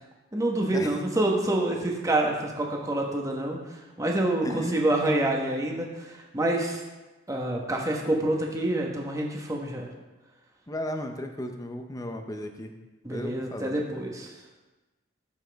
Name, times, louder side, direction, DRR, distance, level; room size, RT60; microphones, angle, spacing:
voice 1, 0.3-6.8 7.3-9.9 13.0-14.3, right 1 dB, 15° right, -1 dB, 1.2 m, -27 dB
voice 2, 4.4-4.9 10.7-12.8 13.1-13.8, left 1 dB, 15° left, 5 dB, 0.6 m, -34 dB
12.5 x 7.3 x 3.5 m, 1.1 s
head